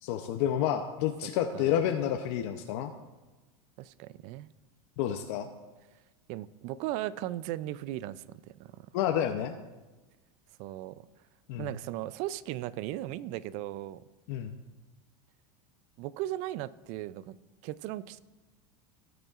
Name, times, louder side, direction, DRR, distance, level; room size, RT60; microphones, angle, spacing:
voice 1, 0.0-2.9 5.0-5.5 8.9-9.5 11.5-11.7 14.3-14.6, left 10 dB, 60° left, 6 dB, 0.7 m, -29 dB
voice 2, 3.8-4.5 6.3-8.9 10.6-11.1 11.6-14.0 16.0-17.4 17.6-18.2, right 14 dB, 45° right, 18 dB, 0.4 m, -37 dB
18.0 x 7.9 x 2.4 m, 1.2 s
supercardioid pair, 140°, 16 cm